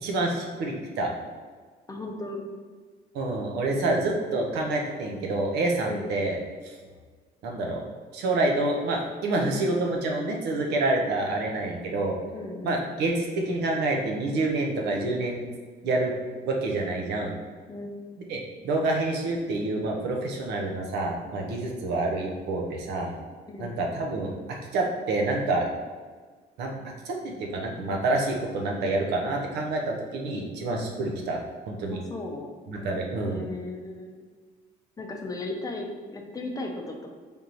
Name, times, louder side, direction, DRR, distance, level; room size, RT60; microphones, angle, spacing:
voice 1, 0.0-1.1 3.1-6.4 6.6-6.7 7.4-7.8 8.1-12.2 12.6-15.4 15.8-16.1 16.4-17.3 18.3-23.1 23.6-25.7 26.6-26.7 27.0-32.0 32.7-33.4, right 2 dB, 80° right, 1 dB, 0.8 m, -27 dB
voice 2, 1.9-2.4 5.9-6.1 12.3-12.8 17.7-17.9 23.5-23.7 31.9-32.5 33.2-34.2 35.0-37.1, left 2 dB, 20° left, 2 dB, 0.6 m, -36 dB
3.6 x 3.0 x 3.9 m, 1.5 s
cardioid pair, 110°, 17 cm